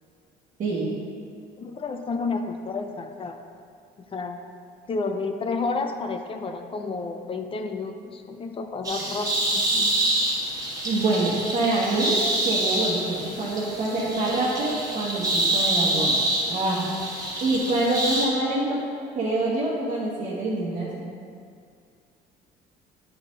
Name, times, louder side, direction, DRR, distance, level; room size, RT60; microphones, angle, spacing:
voice 1, 0.6-0.9 10.8-12.2 12.4-16.2 16.4-18.8 19.1-21.1, right 2 dB, 50° right, -9 dB, 1.3 m, -26 dB
voice 2, 1.6-3.4 4.1-4.4 4.9-10.0, left 4 dB, 30° left, 5 dB, 0.5 m, -31 dB
sound 1, 8.8-18.3, right 1 dB, 20° right, 1.4 m, -26 dB
9.0 x 3.7 x 3.9 m, 2.2 s
cardioid pair, 110°, 17 cm